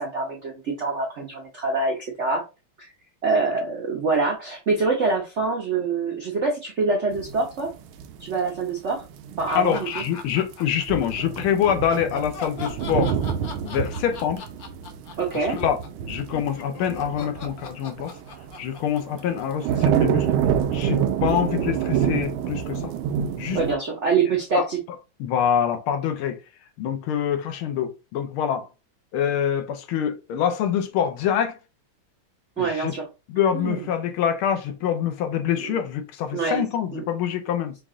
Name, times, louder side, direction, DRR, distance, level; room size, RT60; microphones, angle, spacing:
voice 1, 0.0-2.4 2.8-2.9 3.2-7.7 8.2-9.0 9.4-10.0 15.2-15.6 23.5-24.8 32.6-33.0 33.5-33.8 35.6-35.7 36.3-36.6 36.9-37.0, right 4 dB, 65° right, 0.7 m, -25 dB
sound 1, 7.1-8.7 9.0-9.6 9.9-10.1 10.4-10.5 10.9-18.6 19.0-23.7, right 8 dB, 80° right, 1.4 m, -27 dB
sound 2, 9.5-11.1 11.6-19.9, left 5 dB, 55° left, 1.1 m, -38 dB
voice 2, 9.6-13.2 13.6-14.4 15.3-15.8 16.1-18.1 18.6-20.3 20.7-22.9 23.4-23.6 24.5-24.7 25.2-26.4 26.8-28.6 29.1-31.6 32.6-32.9 33.3-37.8, left 9 dB, 85° left, 1.6 m, -25 dB
5.2 x 2.4 x 3.6 m
omnidirectional pair, 2.3 m